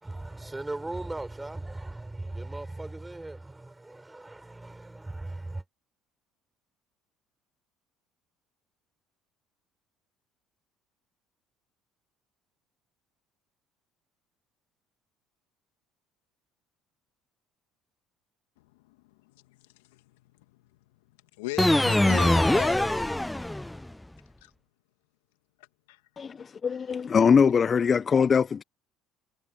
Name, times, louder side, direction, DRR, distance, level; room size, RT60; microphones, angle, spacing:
voice 1, 0.0-5.6, right 2 dB, 15° right, 5.4 m, -38 dB
voice 2, 18.6-19.0 19.2-20.2 21.4-22.9 24.4-24.5 25.9-26.0, left 22 dB, 80° left, 2.2 m, -39 dB
sound 1, 21.6-23.9, left 1 dB, 10° left, 0.5 m, -23 dB
voice 3, 26.2-28.6, left 6 dB, 40° left, 0.8 m, -22 dB
hypercardioid pair, 65°, 0 cm